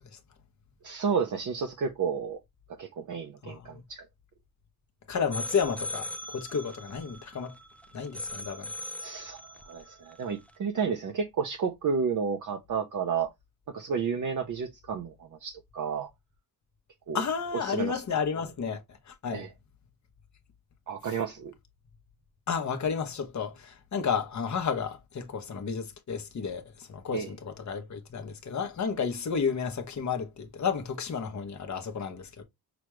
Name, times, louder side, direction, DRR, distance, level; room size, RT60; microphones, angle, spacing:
voice 1, 0.8-2.4 2.8-4.1 9.0-9.4 9.7-13.3 13.7-15.1 15.4-16.1 17.1-17.2 17.7-18.0 19.3-19.5 20.9-21.5 27.1-27.3, right 6 dB, 50° right, 0.7 m, -31 dB
voice 2, 3.4-3.8 5.1-7.6 7.9-8.7 17.1-18.8 19.1-19.4 21.0-21.2 22.5-32.4, left 6 dB, 45° left, 1.0 m, -32 dB
sound 1, 5.3-10.5, left 1 dB, 5° left, 0.3 m, -40 dB
6.0 x 2.4 x 3.1 m
wide cardioid pair, 145°, 39 cm